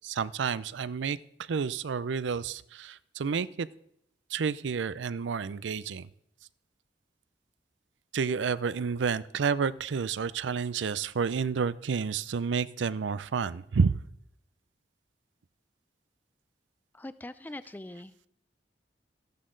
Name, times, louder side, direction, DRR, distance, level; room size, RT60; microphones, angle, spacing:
voice 1, 0.0-1.2 1.5-3.7 4.3-6.1 8.1-14.0, right 5 dB, 90° right, 18 dB, 0.5 m, -30 dB
voice 2, 16.9-18.1, left 1 dB, 10° left, 14 dB, 0.3 m, -42 dB
14.0 x 10.5 x 3.8 m, 0.75 s
head